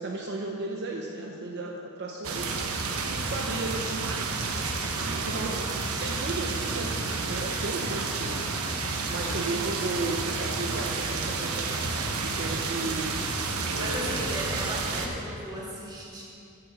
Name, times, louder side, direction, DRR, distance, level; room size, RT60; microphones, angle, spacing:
voice 1, 0.0-2.6 3.0-4.3 5.0-8.5 9.1-11.8 12.2-13.2 13.7-14.2, right 2 dB, 50° right, 0 dB, 0.7 m, -35 dB
sound 1, 2.2-15.1, right 3 dB, 75° right, 1.0 m, -30 dB
voice 2, 9.0-9.4 13.8-16.2, equal, 20° right, -6 dB, 2.2 m, -36 dB
8.5 x 8.1 x 6.3 m, 2.6 s
head